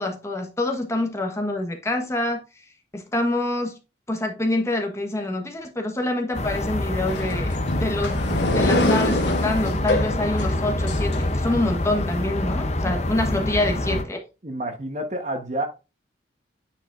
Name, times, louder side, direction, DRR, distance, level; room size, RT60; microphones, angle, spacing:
voice 1, 0.0-2.4 2.9-3.8 4.1-14.2, left 2 dB, 15° left, 1.1 m, -26 dB
sound 1, 6.3-14.0, left 1 dB, 35° left, 0.6 m, -26 dB
sound 2, 7.1-11.8, left 1 dB, 65° left, 1.1 m, -26 dB
voice 2, 14.4-15.7, right 1 dB, 40° right, 1.1 m, -29 dB
8.8 x 5.0 x 2.5 m
head